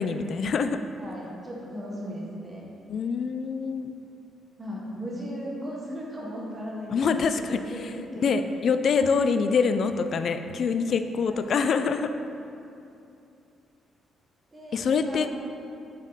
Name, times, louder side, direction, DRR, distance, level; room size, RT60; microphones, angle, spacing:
voice 1, 0.0-0.8 2.9-3.9 6.9-7.9 8.2-12.1 14.7-15.3, left 5 dB, 55° left, 9 dB, 0.3 m, -25 dB
voice 2, 1.0-2.7 4.6-8.6 11.3-11.4 14.5-15.3, equal, 25° right, -4 dB, 1.3 m, -37 dB
5.4 x 5.1 x 4.0 m, 2.7 s
cardioid pair, 90°, 0 cm